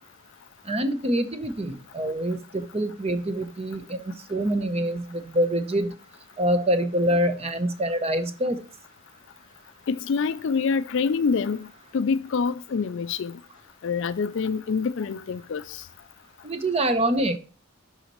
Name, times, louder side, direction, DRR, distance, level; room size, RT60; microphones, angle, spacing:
voice 1, 0.6-6.0 6.4-8.6 16.4-17.4, right 1 dB, 25° right, 0.7 m, -25 dB
voice 2, 9.9-11.7 11.9-13.4 13.8-15.8, left 5 dB, 55° left, 0.4 m, -26 dB
11.5 x 4.1 x 3.0 m
head